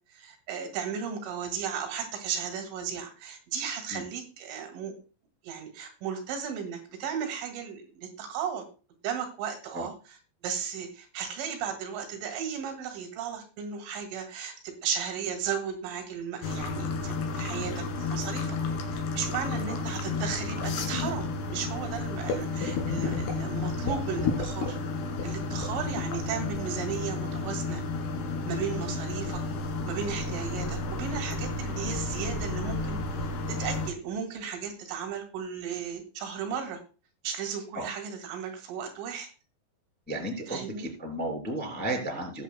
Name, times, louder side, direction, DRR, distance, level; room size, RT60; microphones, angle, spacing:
voice 1, 0.1-4.9 5.4-8.7 9.0-9.9 10.4-18.6 18.9-24.8 25.2-27.8 28.5-29.4 29.9-33.0 33.5-36.8 37.2-39.3 40.5-40.9, right 7 dB, 85° right, 5 dB, 4.5 m, -35 dB
sound 1, 16.4-33.9, left 3 dB, 65° left, 3.5 m, -32 dB
voice 2, 40.1-42.4, right 1 dB, 5° left, 1 dB, 1.7 m, -33 dB
20.0 x 7.1 x 2.2 m, 0.34 s
omnidirectional pair, 5.5 m